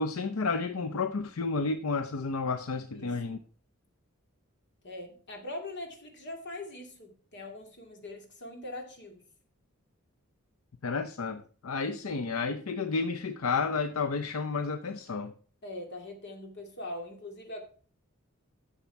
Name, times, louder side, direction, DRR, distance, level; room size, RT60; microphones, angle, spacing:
voice 1, 0.0-3.4 10.8-15.3, left 4 dB, 75° left, 10 dB, 0.6 m, -31 dB
voice 2, 4.8-9.2 15.6-17.6, left 1 dB, 55° left, 3 dB, 2.4 m, -42 dB
11.0 x 7.0 x 4.6 m, 0.43 s
head